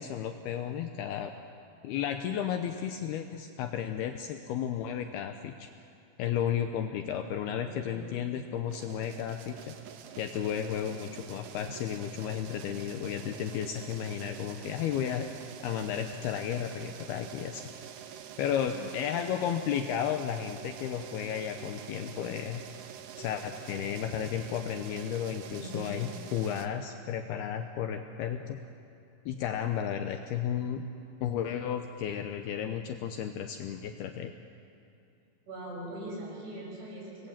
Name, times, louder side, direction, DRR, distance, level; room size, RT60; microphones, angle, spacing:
voice 1, 0.0-1.3 1.8-5.7 6.2-9.7 10.2-15.3 15.6-17.7 18.4-22.6 23.2-28.6 29.3-30.9 31.2-34.3, left 9 dB, 80° left, 6 dB, 2.3 m, -33 dB
voice 2, 7.6-8.1 18.7-19.4 25.5-26.1 35.5-37.3, right 1 dB, 70° right, -3 dB, 9.0 m, -42 dB
sound 1, 8.7-26.7, right 9 dB, 85° right, 1.9 m, -46 dB
26.0 x 20.5 x 7.4 m, 2.7 s
omnidirectional pair, 5.5 m